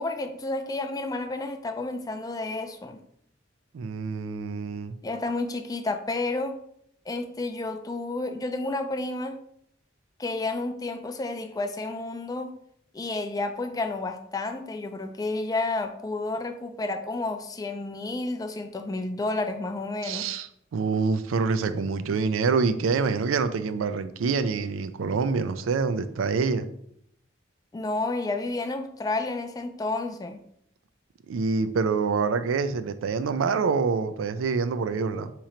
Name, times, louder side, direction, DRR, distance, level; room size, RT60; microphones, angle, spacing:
voice 1, 0.0-3.0 5.0-6.6 7.1-9.4 10.2-12.5 12.9-20.3 27.7-30.4, left 2 dB, 20° left, 7 dB, 0.3 m, -31 dB
voice 2, 3.7-4.9 20.0-26.6 31.3-35.3, right 5 dB, 85° right, 11 dB, 0.4 m, -26 dB
3.7 x 3.0 x 4.2 m, 0.71 s
head